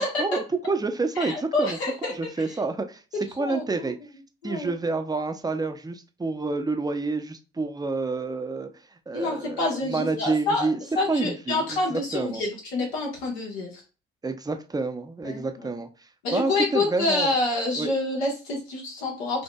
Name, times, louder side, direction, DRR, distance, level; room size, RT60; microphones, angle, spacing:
voice 1, 0.0-3.0 3.4-4.0 4.4-8.7 9.1-10.8 11.1-12.4 14.2-17.3 17.8-17.9, right 3 dB, 10° right, 7 dB, 0.6 m, -29 dB
voice 2, 1.2-2.1 3.1-3.9 4.4-4.7 9.1-10.7 10.9-13.8 15.2-15.7 16.2-19.4, left 2 dB, 80° left, -2 dB, 1.3 m, -27 dB
5.4 x 2.7 x 2.3 m, 0.34 s
figure-of-eight pair, 40°, 31 cm